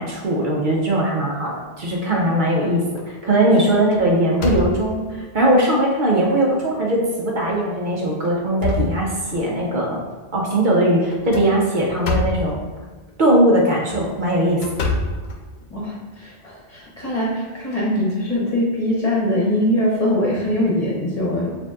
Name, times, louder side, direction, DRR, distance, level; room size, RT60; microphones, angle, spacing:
voice 1, 0.0-1.5 1.8-10.0 10.3-12.6 13.2-14.6, right 1 dB, 55° right, -2 dB, 0.8 m, -19 dB
sound 1, 2.0-2.5 3.0-3.2 3.6-5.1 5.8-5.9 6.4-6.5 7.4-7.7 8.1-9.6 11.1-12.6 13.7-15.9, left 3 dB, 80° left, 0.9 m, -27 dB
voice 2, 15.7-21.5, left 1 dB, 40° left, -5 dB, 1.1 m, -22 dB
6.7 x 2.6 x 2.4 m, 1.4 s
omnidirectional pair, 1.1 m